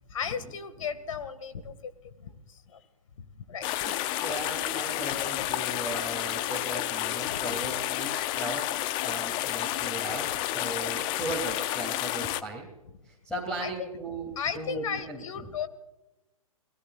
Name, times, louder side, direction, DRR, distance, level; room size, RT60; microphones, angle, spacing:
voice 1, 0.1-1.9 2.2-2.8 3.2-3.7 5.9-6.0 7.3-7.4 13.6-13.9 14.4-15.7, left 7 dB, 65° left, 12 dB, 2.1 m, -35 dB
sound 1, 3.6-12.4, left 14 dB, 25° left, 0.6 m, -30 dB
voice 2, 4.2-8.7 8.9-12.7 13.0-14.3 14.5-15.2, right 2 dB, 5° left, 0 dB, 3.0 m, -37 dB
30.0 x 18.0 x 2.5 m, 0.99 s
hypercardioid pair, 125°, 18 cm